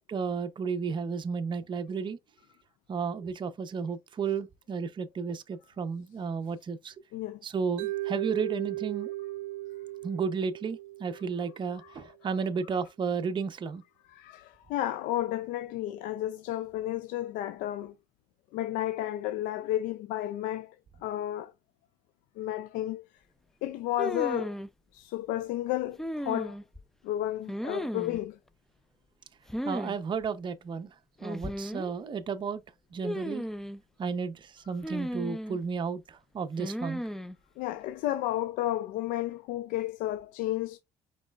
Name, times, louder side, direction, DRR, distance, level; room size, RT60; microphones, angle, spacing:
voice 1, 0.0-2.2 2.9-6.9 7.4-9.1 10.0-13.8 29.6-30.9 31.2-32.6 32.9-33.4 34.0-37.0, right 5 dB, 35° right, 0.7 m, -33 dB
Mallet percussion, 7.8-11.9, right 17 dB, 85° right, 0.6 m, -37 dB
voice 2, 11.8-12.1 14.1-17.9 18.5-20.7 21.0-21.5 22.4-23.0 23.6-24.5 24.9-26.6 27.0-28.4 37.6-40.8, left 14 dB, 80° left, 0.4 m, -32 dB
sound 1, 24.0-24.7 26.0-26.8 27.5-28.2 29.5-30.0 30.2-30.3 31.2-31.9 33.0-33.8 34.8-35.6 36.6-37.3, equal, 5° left, 0.4 m, -35 dB
5.2 x 4.1 x 2.3 m
supercardioid pair, 90°, 14 cm